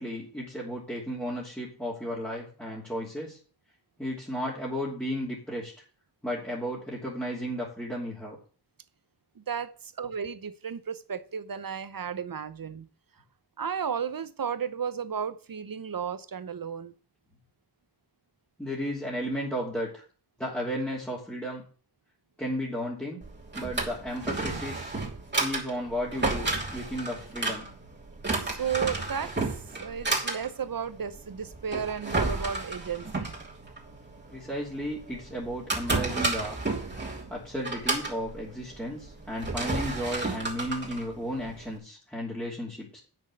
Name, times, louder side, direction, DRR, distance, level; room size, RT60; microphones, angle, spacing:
voice 1, 0.0-3.4 4.0-5.7 6.2-8.4 18.6-20.0 20.4-21.6 22.4-23.2 23.5-25.0 25.4-27.6 34.3-36.6 37.3-43.0, equal, 5° left, 2.9 m, -34 dB
voice 2, 9.4-12.9 13.6-16.9 28.4-29.3 29.8-33.3, right 7 dB, 55° right, 0.9 m, -34 dB
Drawer open or close, 23.2-41.8, right 3 dB, 25° right, 3.0 m, -32 dB
8.7 x 6.2 x 7.8 m
wide cardioid pair, 90°, 40 cm